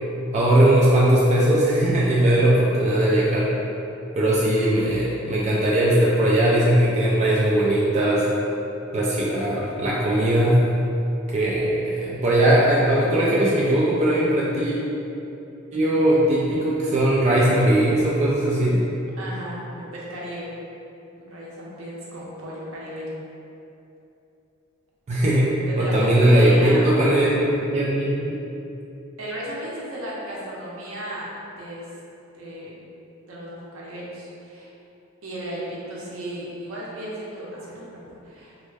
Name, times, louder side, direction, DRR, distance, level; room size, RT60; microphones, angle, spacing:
voice 1, 0.3-3.5 4.2-8.3 8.9-10.6 11.3-14.8 15.7-18.8 25.1-25.5 25.8-28.4, right 1 dB, 35° right, -6 dB, 0.3 m, -19 dB
voice 2, 19.2-20.5 21.2-23.2 25.3-25.4 25.7-26.9 29.2-31.8 32.3-32.7 33.3-34.7 35.2-38.5, right 1 dB, 70° right, -5 dB, 0.7 m, -35 dB
3.2 x 2.1 x 3.3 m, 2.8 s
head